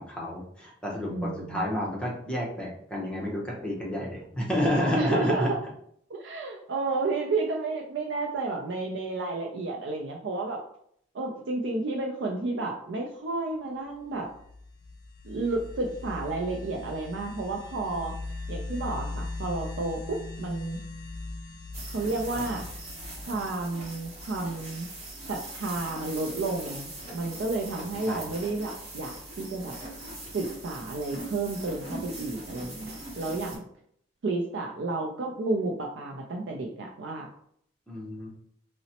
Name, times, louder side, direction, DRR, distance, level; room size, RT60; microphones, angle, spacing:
voice 1, 0.0-5.5 22.3-22.4 28.1-28.2 37.9-38.3, left 1 dB, 5° left, -5 dB, 0.7 m, -30 dB
voice 2, 1.1-1.6 4.9-5.6 6.1-10.6 11.1-14.3 15.2-18.1 18.5-20.8 21.9-22.6 23.3-24.9 25.3-29.8 30.3-33.7 34.2-37.3, right 3 dB, 85° right, 1 dB, 0.4 m, -31 dB
sound 1, 14.1-24.7, left 2 dB, 55° left, 0.6 m, -40 dB
sound 2, 21.7-33.6, right 1 dB, 35° right, 1.0 m, -41 dB
3.9 x 2.0 x 2.8 m, 0.66 s
head